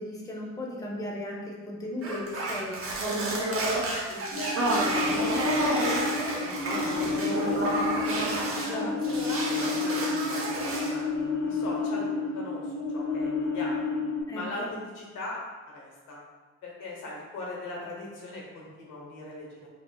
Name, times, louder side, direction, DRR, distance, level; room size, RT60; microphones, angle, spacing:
voice 1, 0.0-2.8 8.7-8.9 14.3-14.7, left 1 dB, 10° left, -2 dB, 0.7 m, -36 dB
sound 1, 2.0-8.7 9.0-11.0, right 2 dB, 45° right, 0.8 m, -30 dB
voice 2, 3.9-8.2 8.6-13.8 14.3-15.4 15.7-16.2 16.6-19.7, left 2 dB, 90° left, -3 dB, 1.1 m, -40 dB
sound 2, 4.3-14.2, left 4 dB, 50° left, 0.8 m, -30 dB
4.4 x 2.7 x 2.3 m, 1.4 s
cardioid pair, 90°, 30 cm